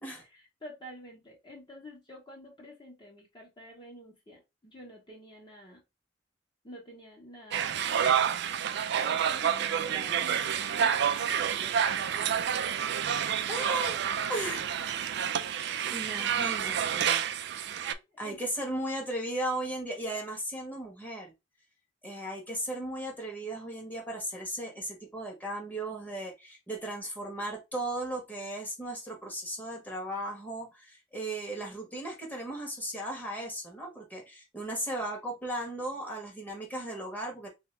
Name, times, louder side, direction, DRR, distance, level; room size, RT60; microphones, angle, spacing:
voice 1, 0.3-5.8 6.6-12.6 17.9-18.4, equal, 25° left, -1 dB, 1.3 m, -49 dB
sound 1, 7.5-17.9, right 8 dB, 65° right, 0.4 m, -29 dB
voice 2, 9.4-10.3 13.5-14.0 14.3-14.7 15.5-17.2 18.2-21.3 22.0-37.5, right 1 dB, 10° left, 0 dB, 1.3 m, -36 dB
3.5 x 2.8 x 3.3 m, 0.23 s
head